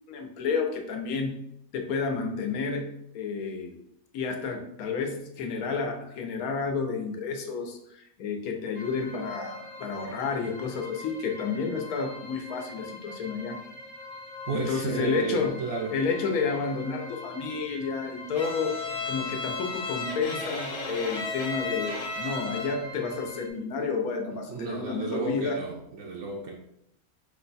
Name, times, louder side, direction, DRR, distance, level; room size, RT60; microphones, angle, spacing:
voice 1, 0.1-1.4 1.7-2.9 3.1-3.8 4.1-13.6 14.5-15.5 15.9-18.8 19.0-25.6, left 5 dB, 85° left, 3 dB, 1.2 m, -31 dB
sound 1, 8.8-23.5, left 2 dB, 70° left, 1.1 m, -43 dB
voice 2, 14.5-16.0 24.3-26.6, right 4 dB, 75° right, -1 dB, 0.9 m, -32 dB
Bowed string instrument, 18.4-22.9, left 3 dB, 50° left, 0.4 m, -34 dB
5.1 x 2.2 x 3.9 m, 0.77 s
omnidirectional pair, 1.5 m